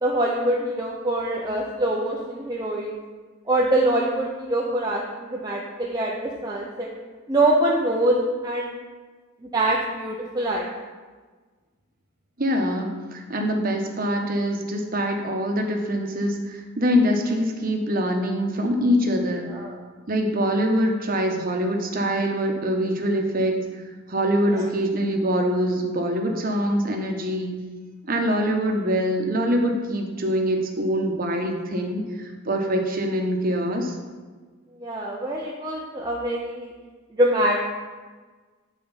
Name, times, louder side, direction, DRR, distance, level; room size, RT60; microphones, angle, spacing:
voice 1, 0.0-2.9 3.5-6.9 7.3-8.7 9.5-10.7 19.5-19.7 24.5-24.6 34.8-36.7 37.2-37.6, right 1 dB, 20° right, -3 dB, 0.7 m, -24 dB
voice 2, 12.4-19.5 20.1-27.5 28.0-34.0, equal, 45° right, 3 dB, 1.0 m, -24 dB
9.0 x 4.5 x 5.6 m, 1.4 s
head